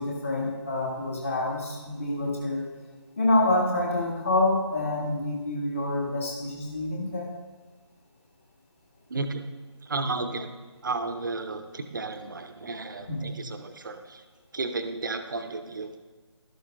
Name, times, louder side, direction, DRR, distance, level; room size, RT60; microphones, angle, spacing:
voice 1, 0.0-2.7 3.2-7.3 13.1-13.3, left 2 dB, 30° left, -1 dB, 1.4 m, -27 dB
voice 2, 9.1-9.4 9.9-10.5 10.8-14.2 14.5-16.0, right 3 dB, 40° right, 7 dB, 0.6 m, -33 dB
12.5 x 11.5 x 2.2 m, 1.3 s
figure-of-eight pair, 155°, 15 cm